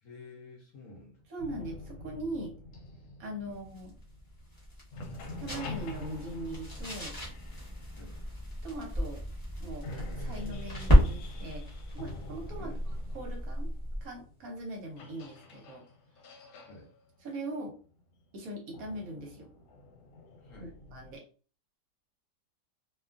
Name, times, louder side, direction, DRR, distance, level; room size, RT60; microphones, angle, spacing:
voice 1, 0.0-1.2 3.5-3.6 8.0-8.2 12.6-12.8 16.7-16.9 20.4-20.7, left 3 dB, 65° left, -2 dB, 0.9 m, -50 dB
voice 2, 1.3-2.6 3.2-3.9 5.4-7.2 8.6-9.2 9.6-11.6 11.9-12.7 13.1-13.7 14.0-15.8 17.2-17.8 18.3-19.5 20.6-21.2, right 1 dB, 65° right, 1 dB, 1.0 m, -40 dB
sound 1, 1.4-4.6 4.8-8.8 9.4-9.5 9.8-21.2, left 2 dB, 80° left, 1.2 m, -47 dB
sound 2, 3.5-14.2, equal, 20° left, 0.6 m, -32 dB
2.7 x 2.3 x 2.4 m, 0.38 s
omnidirectional pair, 1.8 m